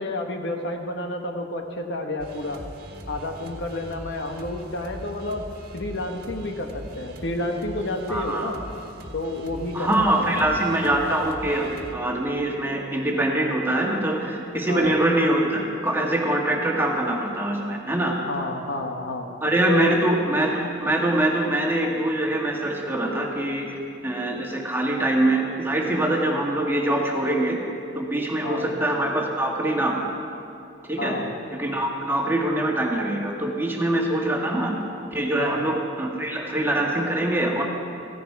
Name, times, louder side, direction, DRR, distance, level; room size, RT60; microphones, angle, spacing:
voice 1, 0.0-2.6 3.1-5.4 5.7-8.6 9.1-9.9 10.2-10.5 14.7-15.0 18.2-19.3 19.6-20.0 28.4-28.7 31.0-31.3 35.4-35.6, left 2 dB, 60° left, 3 dB, 1.2 m, -30 dB
sound 1, 2.2-11.9, equal, 50° right, 1.6 m, -41 dB
voice 2, 8.1-8.5 9.7-18.1 19.4-23.7 24.0-27.6 28.0-30.0 30.9-31.2 31.5-34.7 35.1-37.6, right 1 dB, 10° right, -1 dB, 1.7 m, -24 dB
16.5 x 15.5 x 4.7 m, 2.7 s
head